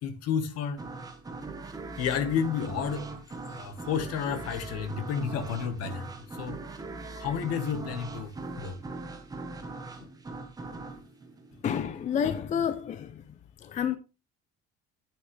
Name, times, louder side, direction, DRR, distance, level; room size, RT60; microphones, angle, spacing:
voice 1, 0.0-0.8 2.0-3.1 3.5-6.6 7.1-8.8, left 7 dB, 55° left, 1.3 m, -31 dB
sound 1, 0.8-12.2, right 3 dB, 10° right, 1.0 m, -41 dB
voice 2, 11.6-14.0, left 8 dB, 25° left, 0.4 m, -30 dB
9.7 x 8.7 x 3.2 m
cardioid pair, 175°, 29 cm